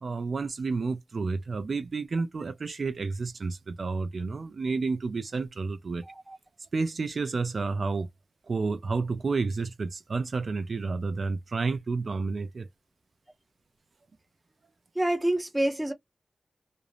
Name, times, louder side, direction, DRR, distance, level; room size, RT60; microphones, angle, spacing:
voice 1, 0.0-6.0 6.7-8.1 8.4-12.7, right 4 dB, 55° right, 0.4 m, -30 dB
voice 2, 6.0-6.4 14.9-15.9, right 1 dB, 10° right, 0.6 m, -27 dB
2.5 x 2.0 x 3.0 m
wide cardioid pair, 125°, 0 cm